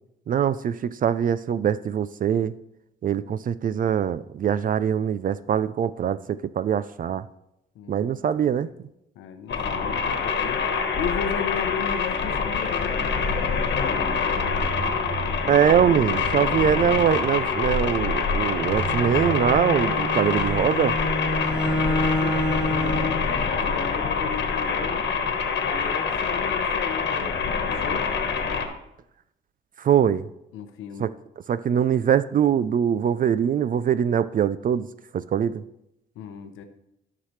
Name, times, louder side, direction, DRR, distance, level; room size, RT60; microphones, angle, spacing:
voice 1, 0.3-2.5 3.0-7.3 7.9-8.7 15.5-21.0 29.8-30.3 31.0-31.1 31.5-34.9 35.1-35.6, right 8 dB, 45° right, 15 dB, 0.4 m, -23 dB
voice 2, 7.7-8.7 9.2-10.6 11.0-13.0 21.2-25.1 25.6-28.1 30.5-31.1 36.2-36.6, left 7 dB, 90° left, 6 dB, 0.8 m, -35 dB
sound 1, 9.5-28.7, left 5 dB, 65° left, 1.3 m, -25 dB
sound 2, 14.5-19.5, right 3 dB, 60° right, 3.7 m, -36 dB
Bowed string instrument, 18.6-23.3, left 1 dB, 5° right, 1.0 m, -28 dB
13.5 x 5.8 x 3.2 m, 0.83 s
cardioid pair, 90°, 20 cm